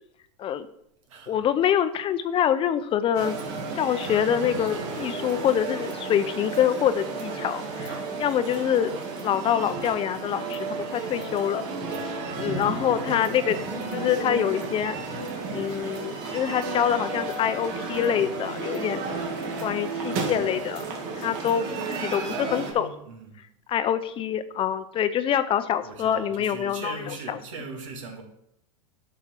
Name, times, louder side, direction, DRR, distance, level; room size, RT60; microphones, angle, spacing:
voice 1, 1.3-3.4 3.7-8.9 9.2-11.6 12.3-13.6 13.9-15.0 15.5-19.0 19.6-20.8 21.1-22.9 23.7-27.4, left 9 dB, 35° left, 0.6 m, -25 dB
sound 1, 3.1-22.7, right 4 dB, 55° right, 2.1 m, -33 dB
voice 2, 12.6-13.1 22.3-23.4 25.8-28.2, right 4 dB, 80° right, 2.1 m, -40 dB
8.7 x 6.0 x 4.5 m
hypercardioid pair, 110°, 16 cm